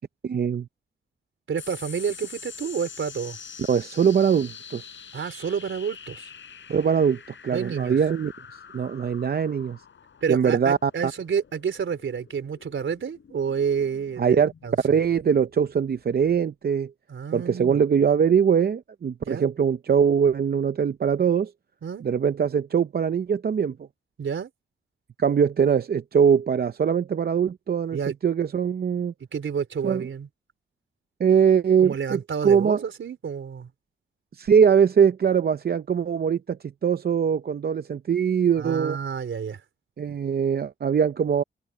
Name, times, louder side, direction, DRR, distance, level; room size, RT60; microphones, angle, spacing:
voice 1, 0.2-0.7 3.7-4.8 6.7-9.8 10.3-11.1 14.2-14.5 14.8-16.9 17.3-21.5 22.0-23.8 25.2-28.0 28.2-29.1 29.8-30.1 31.2-32.8 34.3-39.0 40.0-41.4, right 7 dB, 50° right, 0.6 m, -22 dB
voice 2, 1.5-3.4 5.1-6.3 7.5-8.0 10.2-14.8 17.1-17.8 19.3-19.5 21.8-22.0 24.2-24.5 27.9-28.1 29.3-30.3 31.8-33.7 38.6-39.6, right 7 dB, 70° right, 4.1 m, -29 dB
sound 1, 1.6-16.4, left 6 dB, 65° left, 7.3 m, -45 dB
open air
wide cardioid pair, 100°, 21 cm